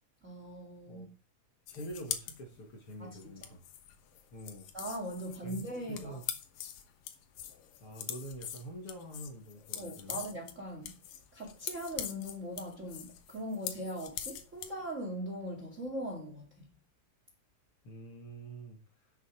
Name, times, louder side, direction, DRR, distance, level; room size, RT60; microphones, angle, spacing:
voice 1, 0.2-1.1 3.0-3.3 4.7-6.2 9.8-11.0 11.3-16.7, equal, 25° right, 2.1 m, -40 dB
sound 1, 1.7-14.8, left 10 dB, 75° left, 2.8 m, -43 dB
voice 2, 1.7-3.6 4.3-4.7 5.4-6.2 7.8-10.2 17.8-18.8, right 1 dB, 45° left, 2.9 m, -45 dB
10.0 x 7.8 x 4.9 m
omnidirectional pair, 4.0 m